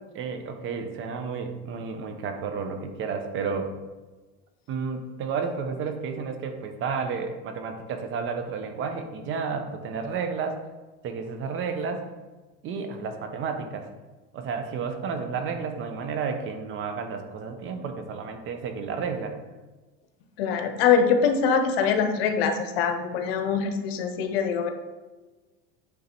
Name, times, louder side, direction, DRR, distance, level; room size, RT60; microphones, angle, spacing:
voice 1, 0.1-3.7 4.7-10.6 11.0-12.0 12.6-13.8 14.3-19.3, right 5 dB, 40° right, 6 dB, 0.9 m, -31 dB
voice 2, 20.4-24.7, left 6 dB, 90° left, 7 dB, 1.0 m, -23 dB
8.7 x 3.7 x 4.4 m, 1.2 s
supercardioid pair, 140°, 29 cm